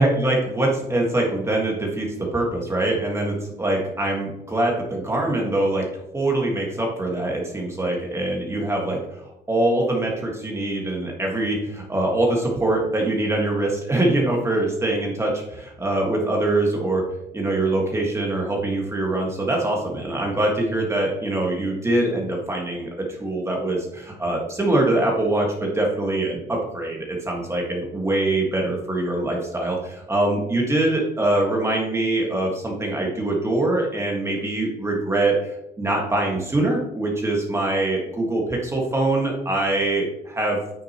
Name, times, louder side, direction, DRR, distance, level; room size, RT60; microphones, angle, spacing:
voice 1, 0.0-2.1 2.3-5.9 6.1-17.0 17.3-22.9 23.2-40.6, right 2 dB, 15° right, -1 dB, 1.7 m, -23 dB
8.8 x 6.6 x 3.0 m, 0.87 s
cardioid pair, 110°, 17 cm